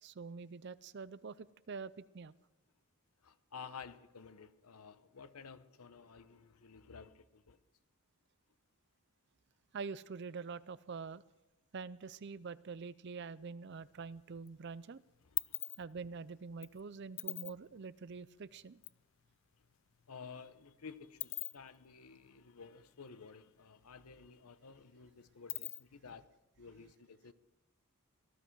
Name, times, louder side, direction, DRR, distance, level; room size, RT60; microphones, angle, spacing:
voice 1, 0.0-2.3 9.7-11.2 11.7-15.0 15.8-18.8, right 5 dB, 50° right, 0.5 m, -45 dB
voice 2, 3.2-7.6 20.1-26.2 26.6-27.3, left 5 dB, 90° left, 0.9 m, -53 dB
sound 1, 13.7-14.5 14.8-19.0 19.3-19.4 19.6-23.5 23.8-23.9 24.2-26.1, left 18 dB, 60° left, 0.4 m, -43 dB
18.5 x 12.5 x 4.7 m
head